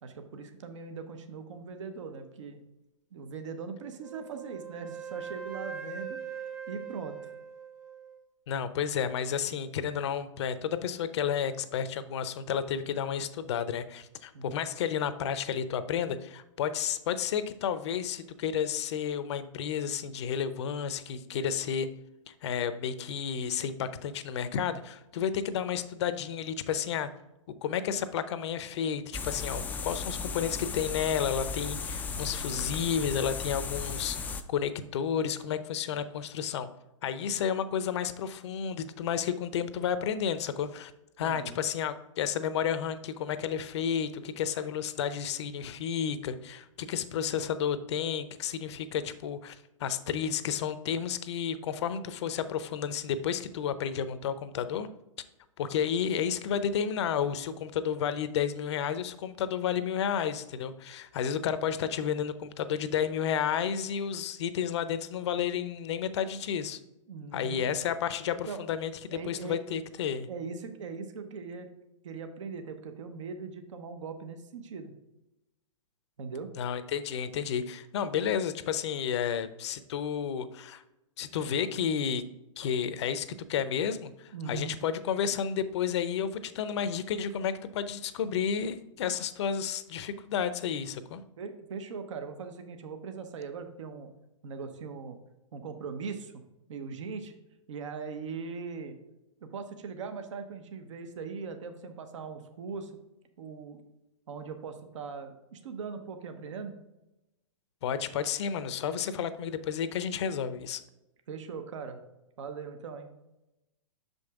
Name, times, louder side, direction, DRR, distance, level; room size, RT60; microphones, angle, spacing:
voice 1, 0.0-2.6 3.1-7.3 14.3-14.6 32.5-32.7 41.2-41.6 47.1-47.4 61.8-61.9 67.1-67.8 68.5-68.6 69.1-69.6 70.3-71.7 72.0-74.9 76.2-76.5 84.3-84.8 91.4-94.1 94.4-95.2 95.5-96.4 96.7-97.3 97.7-99.0 99.4-102.9 103.4-103.9 104.3-106.8 111.3-112.0 112.4-113.1, right 5 dB, 65° right, 7 dB, 0.9 m, -40 dB
Wind instrument woodwind instrument, 4.0-8.2, right 7 dB, 15° right, 0.8 m, -41 dB
voice 2, 8.5-21.9 22.4-27.1 27.6-36.7 37.0-40.9 41.2-54.9 55.6-66.8 67.3-70.3 76.6-80.8 81.2-82.2 82.6-91.2 107.8-110.8, left 8 dB, 55° left, 12 dB, 0.6 m, -31 dB
sound 1, 29.1-34.4, left 5 dB, 10° left, 0.3 m, -35 dB
6.3 x 5.3 x 3.5 m, 0.94 s
hypercardioid pair, 125°, 17 cm